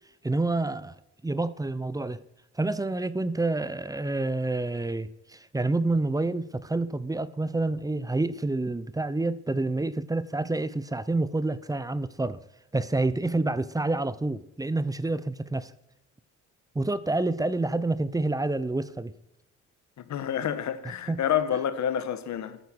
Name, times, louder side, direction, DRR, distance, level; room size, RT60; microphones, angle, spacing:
voice 1, 0.2-0.9 1.2-2.2 2.6-12.4 12.7-15.7 16.7-19.1 21.1-21.2, right 2 dB, 10° right, 0.8 m, -28 dB
voice 2, 20.1-22.6, left 9 dB, 65° left, 1.4 m, -28 dB
13.0 x 9.6 x 6.3 m
cardioid pair, 90°, 30 cm